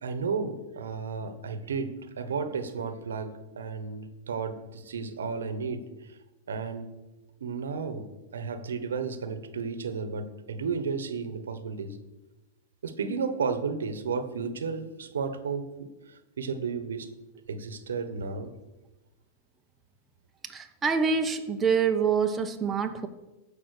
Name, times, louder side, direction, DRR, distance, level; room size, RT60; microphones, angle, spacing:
voice 1, 0.0-1.9 2.2-6.2 6.5-6.9 7.4-12.0 12.8-17.1 17.5-18.5, right 5 dB, 85° right, 10 dB, 1.1 m, -33 dB
voice 2, 20.4-23.1, right 6 dB, 20° right, 4 dB, 1.1 m, -26 dB
14.5 x 5.4 x 6.5 m, 1.1 s
hypercardioid pair, 110°, 0 cm